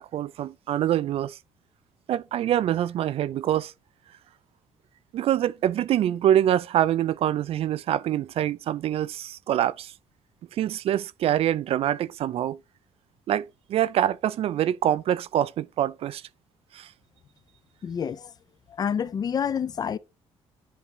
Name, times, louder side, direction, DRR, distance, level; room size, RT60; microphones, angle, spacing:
voice 1, 0.0-1.4 2.1-3.7 5.1-9.9 10.5-12.6 13.3-16.2 16.7-16.9, right 11 dB, 60° right, 0.5 m, -25 dB
voice 2, 17.8-18.3 18.7-20.0, left 7 dB, 35° left, 0.5 m, -28 dB
10.0 x 3.8 x 4.6 m
cardioid pair, 145°, 11 cm